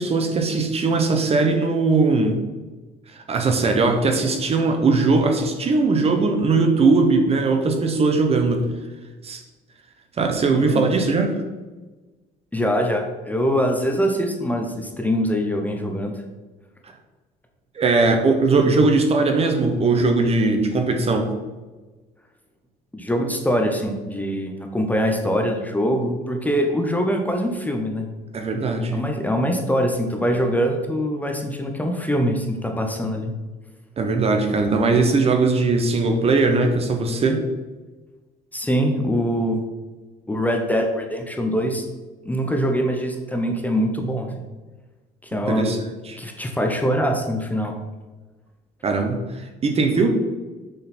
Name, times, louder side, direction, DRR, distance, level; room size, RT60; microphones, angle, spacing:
voice 1, 0.0-2.4 3.1-8.7 9.2-9.4 10.2-11.4 17.8-21.3 28.3-29.0 34.0-37.5 45.5-45.8 46.1-46.2 48.8-49.2 49.6-50.1, right 3 dB, 35° right, 5 dB, 0.9 m, -19 dB
voice 2, 10.5-10.9 12.5-16.1 22.9-28.1 28.9-33.3 38.5-39.6 40.3-41.8 42.3-44.3 45.2-45.7 46.2-47.8, equal, 10° left, 3 dB, 0.8 m, -23 dB
6.7 x 3.9 x 4.3 m, 1.2 s
cardioid pair, 110°, 17 cm